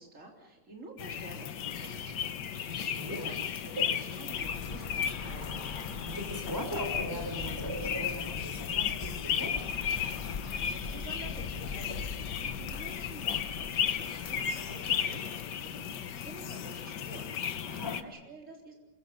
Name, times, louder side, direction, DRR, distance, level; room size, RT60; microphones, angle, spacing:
voice 1, 0.0-3.3 3.7-5.5 10.1-18.7, right 2 dB, 45° right, -1 dB, 4.1 m, -50 dB
sound 1, 1.0-18.0, left 8 dB, 85° left, 1.7 m, -35 dB
sound 2, 1.6-12.9, right 2 dB, 65° right, 2.7 m, -48 dB
voice 2, 2.7-3.3 6.0-9.7 17.6-18.0, equal, 10° right, 2 dB, 5.7 m, -39 dB
Bus / Traffic noise roadway noise, 4.3-16.8, left 5 dB, 40° left, 0.9 m, -43 dB
28.5 x 24.0 x 5.4 m, 1.0 s
omnidirectional pair, 1.8 m